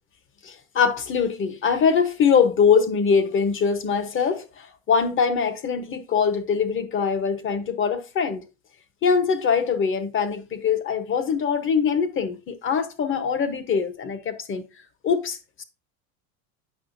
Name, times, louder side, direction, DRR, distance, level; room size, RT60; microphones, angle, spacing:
voice 1, 0.4-8.4 9.0-14.6 15.0-15.6, left 6 dB, 30° left, 1.0 m, -23 dB
8.4 x 5.5 x 2.6 m
supercardioid pair, 110°, 42 cm